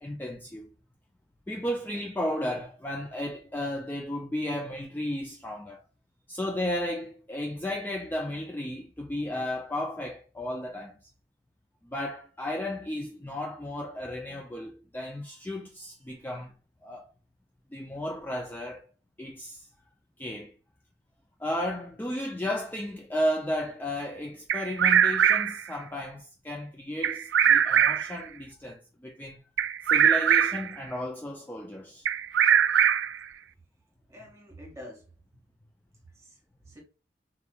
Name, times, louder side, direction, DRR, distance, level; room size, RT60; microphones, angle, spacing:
voice 1, 0.0-0.7 1.5-5.8 6.3-11.0 11.8-16.5 16.8-17.1 17.7-18.9 19.2-19.7 20.2-20.5 21.4-29.4 29.8-32.1, left 1 dB, 10° left, 0.3 m, -34 dB
Bird vocalization bird call bird song, 24.5-25.7 27.0-28.2 29.6-30.7 32.1-33.2, right 9 dB, 80° right, 0.4 m, -22 dB
voice 2, 34.1-35.1 36.1-36.8, left 1 dB, 15° right, 1.8 m, -47 dB
4.3 x 3.6 x 2.3 m
head